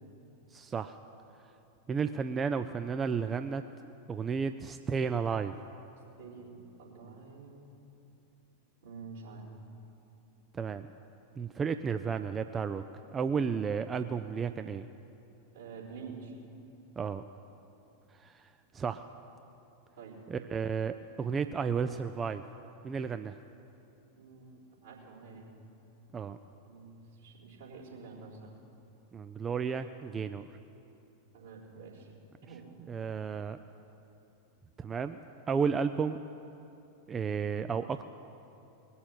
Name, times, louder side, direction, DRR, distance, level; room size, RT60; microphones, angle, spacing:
voice 1, 0.5-1.0 1.9-3.6 4.1-5.5 10.5-10.9 11.4-12.8 13.1-14.9 17.0-17.2 18.2-18.5 18.7-19.1 20.3-22.4 22.8-23.4 26.1-26.4 29.1-30.5 32.9-33.6 34.8-35.2 35.5-36.2 37.1-38.0, right 6 dB, 20° right, 9 dB, 0.4 m, -32 dB
voice 2, 6.2-7.6 8.8-9.5 15.5-16.4 20.0-20.2 24.2-25.5 26.6-28.6 31.3-32.1 32.4-32.7, right 4 dB, 65° right, -7 dB, 3.9 m, -48 dB
20.5 x 6.9 x 7.7 m, 2.9 s
figure-of-eight pair, 90°, 0 cm